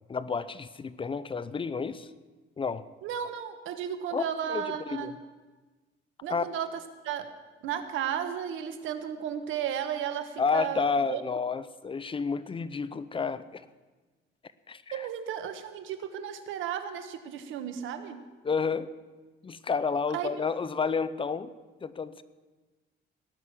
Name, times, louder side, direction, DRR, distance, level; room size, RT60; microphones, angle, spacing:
voice 1, 0.1-2.1 2.6-2.9 4.1-5.2 6.3-6.5 10.4-13.7 14.7-15.1 18.4-18.9 19.4-21.5 21.8-22.2, left 5 dB, 25° left, 15 dB, 0.6 m, -30 dB
voice 2, 3.0-5.1 6.2-7.3 7.6-11.2 14.9-18.3 20.1-20.4, right 9 dB, 90° right, 9 dB, 1.4 m, -34 dB
18.0 x 6.3 x 9.8 m, 1.3 s
cardioid pair, 125°, 20 cm